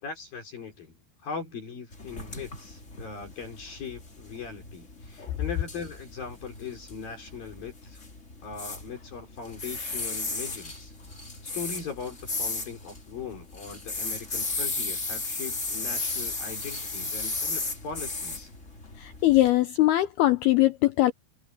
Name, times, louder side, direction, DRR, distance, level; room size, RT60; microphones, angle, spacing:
voice 1, 0.0-8.0 8.4-10.9 11.4-18.5, left 5 dB, 50° left, 5.3 m, -40 dB
sound 1, 1.9-19.5, left 3 dB, 25° left, 1.8 m, -35 dB
voice 2, 19.0-21.1, left 16 dB, 90° left, 2.2 m, -21 dB
omnidirectional pair, 5.5 m